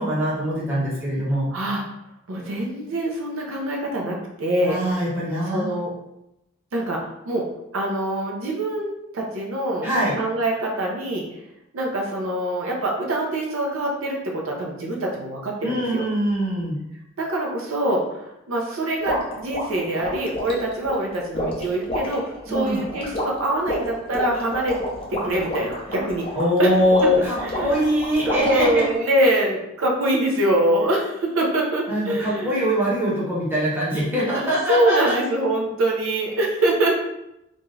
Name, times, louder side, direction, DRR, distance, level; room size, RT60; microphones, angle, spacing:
voice 1, 0.0-1.5 4.6-5.7 9.8-10.2 15.6-16.8 22.5-22.8 26.3-28.8 31.9-35.2, equal, 10° right, -7 dB, 0.7 m, -23 dB
voice 2, 1.5-1.8 2.3-4.8 5.5-5.9 6.7-7.5 7.7-9.9 10.2-11.3 11.7-16.1 17.2-24.8 25.1-26.3 26.6-26.7 27.4-27.9 28.2-32.6 34.2-37.0, right 1 dB, 80° right, -1 dB, 0.5 m, -24 dB
sound 1, 19.1-29.0, equal, 25° left, 0.5 m, -30 dB
2.5 x 2.3 x 3.1 m, 0.87 s
head